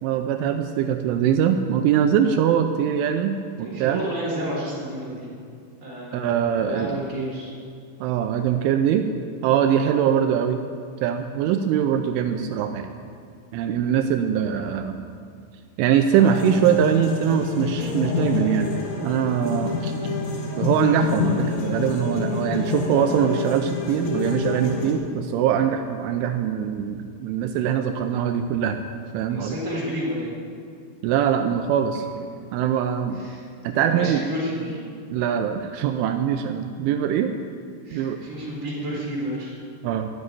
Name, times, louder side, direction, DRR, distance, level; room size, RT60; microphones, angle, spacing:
voice 1, 0.0-4.0 6.1-7.0 8.0-9.1 9.4-10.6 11.0-12.9 13.5-15.0 15.8-18.7 19.0-20.1 20.6-28.8 29.1-29.6 31.0-32.1 32.5-33.2 33.6-34.3 35.1-37.4 37.9-38.2 39.8-40.1, right 9 dB, 85° right, 6 dB, 3.0 m, -22 dB
voice 2, 3.6-5.3 5.8-7.5 9.8-10.0 29.3-30.3 33.2-33.4 33.7-34.8 37.8-39.5, equal, 15° right, -6 dB, 3.8 m, -31 dB
sound 1, 16.1-24.9, left 4 dB, 65° left, 1.9 m, -27 dB
11.5 x 7.7 x 9.6 m, 2.3 s
omnidirectional pair, 5.6 m